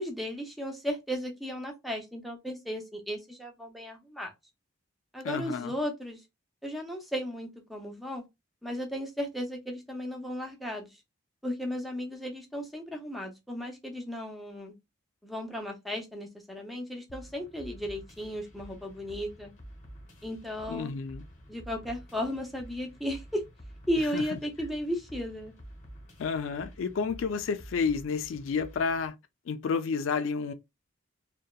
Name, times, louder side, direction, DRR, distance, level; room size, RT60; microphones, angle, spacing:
voice 1, 0.0-4.3 5.1-6.2 6.6-8.2 8.6-11.0 11.4-14.7 15.2-19.5 20.2-20.9 21.5-23.4 23.9-25.5, equal, ahead, 0.5 m, -35 dB
voice 2, 5.2-5.7 20.7-21.3 24.1-24.4 26.2-29.1 29.5-30.5, left 5 dB, 85° left, 0.3 m, -30 dB
sound 1, 17.1-29.1, equal, 40° left, 0.9 m, -49 dB
2.7 x 2.1 x 2.2 m
head